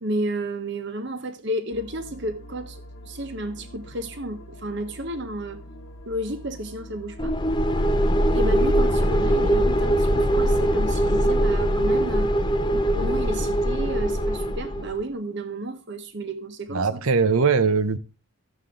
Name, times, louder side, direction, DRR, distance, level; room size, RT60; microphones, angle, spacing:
voice 1, 0.0-5.6 6.0-7.4 8.3-12.4 12.7-17.0, right 1 dB, 50° right, 1.1 m, -32 dB
sound 1, 1.7-11.4, left 1 dB, 80° left, 1.4 m, -43 dB
sound 2, 7.2-15.0, equal, 20° left, 0.6 m, -22 dB
voice 2, 16.7-18.0, right 5 dB, 75° right, 0.8 m, -20 dB
14.0 x 7.3 x 3.8 m
head